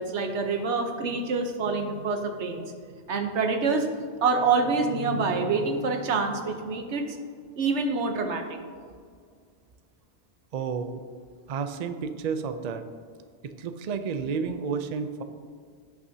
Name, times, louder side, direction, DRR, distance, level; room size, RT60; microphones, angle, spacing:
voice 1, 0.0-2.6 3.1-3.9 4.2-7.2 7.6-8.6, right 4 dB, 85° right, 5 dB, 1.2 m, -26 dB
voice 2, 10.5-11.0 11.5-12.9 13.6-15.2, right 5 dB, 50° right, 9 dB, 0.5 m, -31 dB
16.5 x 6.0 x 2.8 m, 2.1 s
omnidirectional pair, 1.1 m